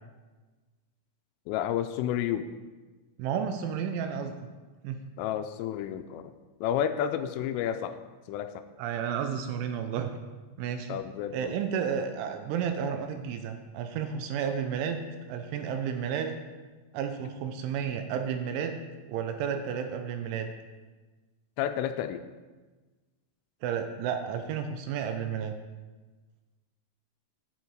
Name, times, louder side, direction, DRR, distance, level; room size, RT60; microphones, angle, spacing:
voice 1, 1.5-2.5 5.2-6.2 6.6-8.0 8.3-8.6 10.9-11.5 21.6-22.2, left 10 dB, 85° left, 9 dB, 3.0 m, -30 dB
voice 2, 3.2-4.3 4.8-5.0 8.8-10.1 10.6-11.0 11.3-15.0 15.3-16.3 16.9-18.7 19.1-20.5 23.6-25.5, right 7 dB, 80° right, 6 dB, 2.9 m, -32 dB
10.5 x 8.6 x 4.7 m, 1.3 s
omnidirectional pair, 5.9 m